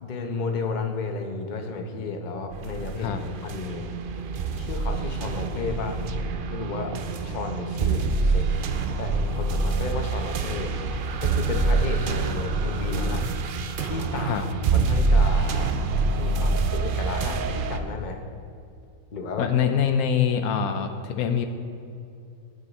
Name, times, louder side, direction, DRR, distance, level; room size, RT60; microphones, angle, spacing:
voice 1, 0.0-3.9 4.5-7.0 7.2-8.6 9.0-10.7 11.2-13.3 13.8-14.5 14.7-15.8 16.2-18.2 19.1-19.5, left 4 dB, 40° left, 4 dB, 0.8 m, -32 dB
sound 1, 2.5-17.8, right 3 dB, 70° right, 0.5 m, -26 dB
voice 2, 19.4-21.5, left 8 dB, 90° left, 7 dB, 1.2 m, -24 dB
16.0 x 5.4 x 4.1 m, 2.6 s
omnidirectional pair, 1.5 m